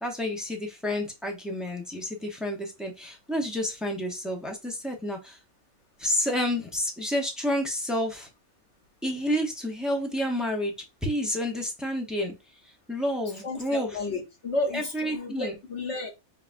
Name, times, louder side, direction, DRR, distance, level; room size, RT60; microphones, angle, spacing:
voice 1, 0.0-5.4 6.0-8.3 9.0-10.7 11.0-12.3 12.9-14.0 14.7-15.6, equal, ahead, 0.4 m, -29 dB
voice 2, 13.4-16.1, left 2 dB, 55° left, 1.1 m, -32 dB
5.7 x 2.3 x 2.5 m
omnidirectional pair, 1.5 m